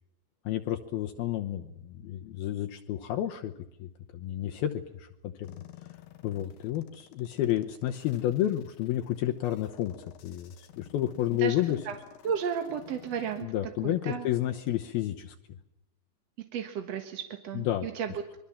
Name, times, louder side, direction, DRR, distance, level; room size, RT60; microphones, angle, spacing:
voice 1, 0.4-3.5 3.8-5.5 6.2-11.8 13.4-15.3 17.6-17.9, left 12 dB, 75° left, 4 dB, 2.8 m, -31 dB
sound 1, 5.4-13.4, left 13 dB, 90° left, 3.5 m, -53 dB
voice 2, 12.2-13.5 13.8-14.3 16.4-18.4, right 7 dB, 55° right, 6 dB, 2.0 m, -33 dB
25.5 x 22.5 x 7.2 m, 0.86 s
omnidirectional pair, 4.6 m